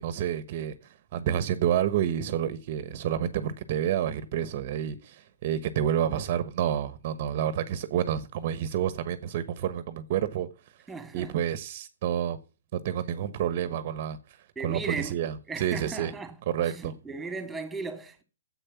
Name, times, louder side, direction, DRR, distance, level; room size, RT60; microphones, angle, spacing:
voice 1, 0.0-10.5 11.1-12.4 12.7-14.4 14.6-16.1 16.5-16.9, right 10 dB, 45° right, 1.1 m, -29 dB
voice 2, 10.9-11.4 14.6-15.2 15.5-16.4 16.7-18.2, right 4 dB, 10° right, 2.3 m, -36 dB
10.0 x 7.9 x 7.1 m
hypercardioid pair, 125°, 0 cm